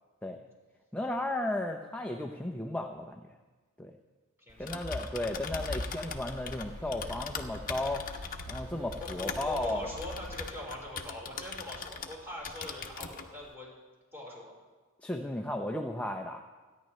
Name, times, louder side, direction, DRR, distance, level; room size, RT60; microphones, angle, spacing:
voice 1, 0.9-3.3 3.8-3.9 4.6-8.1 8.5-9.9 15.0-16.4, left 1 dB, 5° left, 3 dB, 0.6 m, -34 dB
voice 2, 4.4-4.9 9.0-13.7 14.1-14.5, left 1 dB, 10° right, -4 dB, 4.4 m, -42 dB
Typing, 4.5-12.2 12.4-13.3, left 4 dB, 40° left, 1.0 m, -40 dB
sound 1, 5.1-10.5, equal, 85° right, 2.8 m, -45 dB
27.5 x 10.5 x 3.2 m, 1.3 s
head